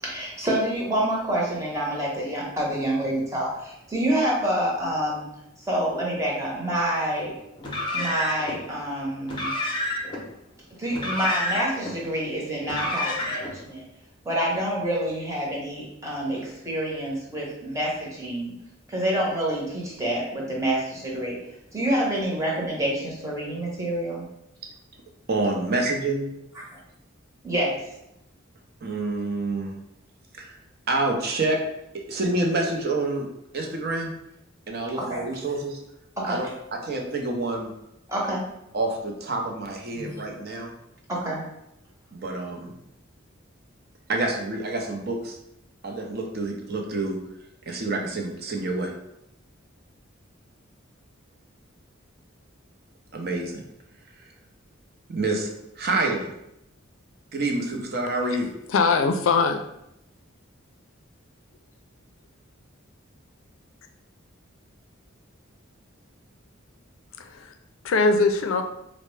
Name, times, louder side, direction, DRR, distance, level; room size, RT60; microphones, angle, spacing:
voice 1, 0.0-5.3 5.6-7.3 7.9-9.5 10.8-13.9 14.2-18.5 18.9-21.4 21.7-24.3 27.4-27.9 35.0-35.2 36.2-36.5 38.1-38.5 39.9-40.1 41.1-41.4, right 1 dB, 15° right, -4 dB, 0.8 m, -27 dB
Car, 7.6-8.6 9.2-10.2 10.9-11.9 12.6-13.6, left 1 dB, 25° left, 0.6 m, -29 dB
voice 2, 25.3-26.3 28.8-29.7 30.4-30.6 30.9-31.6 31.9-33.3 33.5-34.1 34.7-35.8 36.3-37.7 38.7-40.7 42.1-42.7 44.1-45.4 45.8-47.2 47.7-48.9 53.1-53.6 55.1-55.5 55.8-56.3 57.3-58.5, right 2 dB, 50° right, 1 dB, 0.5 m, -27 dB
voice 3, 58.7-59.6 67.2-67.5 67.8-68.6, left 4 dB, 75° left, 6 dB, 0.4 m, -21 dB
4.2 x 2.0 x 3.1 m, 0.81 s
head